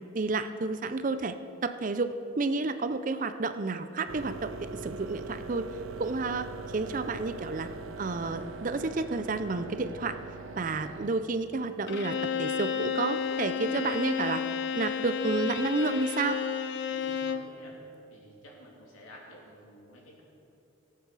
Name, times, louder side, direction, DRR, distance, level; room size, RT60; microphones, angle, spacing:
voice 1, 0.0-1.4 1.6-5.7 6.0-6.5 6.7-7.7 8.0-10.2 10.6-14.4 14.8-16.4, right 3 dB, 40° right, 11 dB, 0.5 m, -30 dB
sound 1, 4.1-11.1, right 3 dB, 85° right, 0.8 m, -42 dB
Bowed string instrument, 11.9-17.5, left 7 dB, 55° left, 0.5 m, -32 dB
voice 2, 16.9-17.7 18.1-20.2, equal, 85° left, -3 dB, 3.1 m, -51 dB
16.5 x 8.5 x 4.8 m, 2.6 s
head